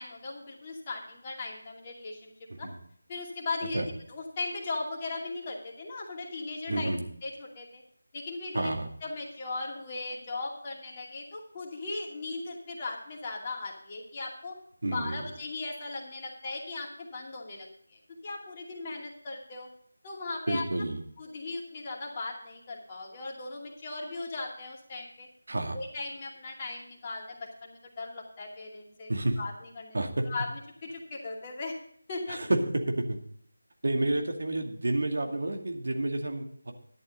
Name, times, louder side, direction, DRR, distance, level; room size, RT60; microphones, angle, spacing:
voice 1, 0.0-2.3 2.6-2.7 3.1-3.8 4.1-6.9 7.2-7.8 8.1-8.7 9.0-14.6 14.9-19.7 20.0-20.6 21.2-25.3 25.7-29.1 29.4-30.0 30.3-31.8 32.1-32.4, left 3 dB, 25° left, -2 dB, 2.4 m, -38 dB
voice 2, 6.7-7.0 8.5-8.9 14.8-15.3 20.5-21.0 25.5-25.8 29.1-29.4 29.9-30.3 32.3-33.2 33.8-36.7, right 1 dB, 60° right, 3 dB, 2.2 m, -29 dB
12.0 x 11.0 x 3.9 m, 0.65 s
figure-of-eight pair, 160°, 0 cm